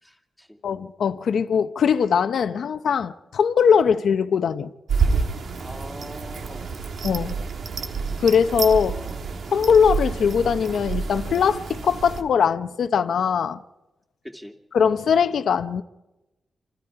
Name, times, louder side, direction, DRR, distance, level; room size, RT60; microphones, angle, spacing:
voice 1, 0.0-0.6 5.6-6.7 8.8-9.2 14.2-14.6, equal, ahead, 2.5 m, -41 dB
voice 2, 0.6-4.7 7.0-7.4 8.2-8.9 9.5-13.6 14.7-15.8, left 7 dB, 85° left, 0.8 m, -21 dB
sound 1, 4.9-12.2, right 5 dB, 70° right, 2.0 m, -28 dB
27.5 x 27.0 x 4.8 m
wide cardioid pair, 140°, 0 cm